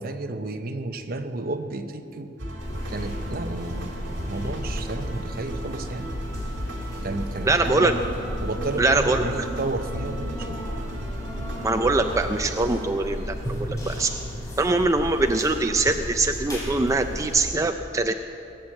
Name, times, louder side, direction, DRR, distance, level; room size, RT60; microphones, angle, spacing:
voice 1, 0.0-2.3 2.9-3.9 4.3-6.1 7.0-8.0 8.4-10.6, right 2 dB, 50° right, 7 dB, 0.9 m, -32 dB
sound 1, 2.4-12.9, right 1 dB, 75° right, 2.3 m, -35 dB
sound 2, 2.6-17.4, equal, 20° left, 3.9 m, -34 dB
voice 2, 7.5-7.9 8.8-9.5 11.6-14.1 14.6-18.1, right 2 dB, 15° right, 6 dB, 0.4 m, -23 dB
19.0 x 8.8 x 7.7 m, 2.8 s
head